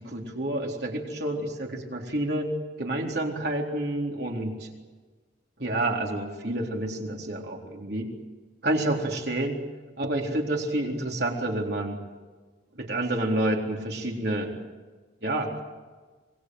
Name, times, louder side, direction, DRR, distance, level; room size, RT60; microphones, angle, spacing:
voice 1, 0.1-2.5 2.8-4.7 5.6-8.1 8.6-9.6 10.0-12.0 12.8-14.5 15.2-15.6, right 1 dB, 60° right, 0 dB, 4.0 m, -29 dB
26.5 x 21.0 x 7.9 m, 1.4 s
head